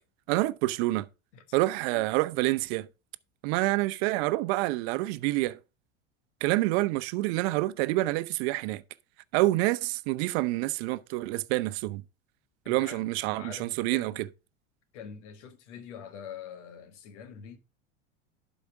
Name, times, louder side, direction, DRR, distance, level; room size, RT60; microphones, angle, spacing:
voice 1, 0.3-1.1 1.5-2.9 3.4-5.6 6.4-8.8 9.3-12.0 12.7-14.1, right 19 dB, 60° right, 0.7 m, -27 dB
voice 2, 12.6-13.0 13.3-14.2 14.9-17.6, left 7 dB, 70° left, 2.0 m, -45 dB
11.5 x 5.0 x 4.6 m
hypercardioid pair, 100°, 37 cm